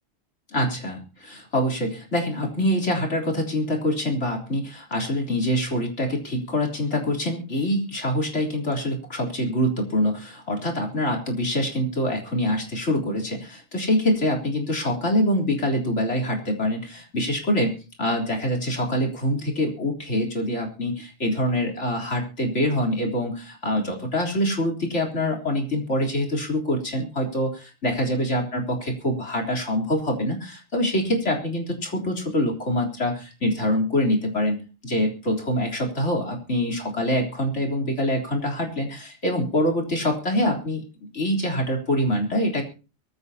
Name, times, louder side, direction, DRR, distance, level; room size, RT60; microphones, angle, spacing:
voice 1, 0.5-17.7 18.0-40.8 41.1-42.6, left 1 dB, 60° left, 0 dB, 4.0 m, -25 dB
23.0 x 14.5 x 2.8 m, 0.34 s
omnidirectional pair, 1.3 m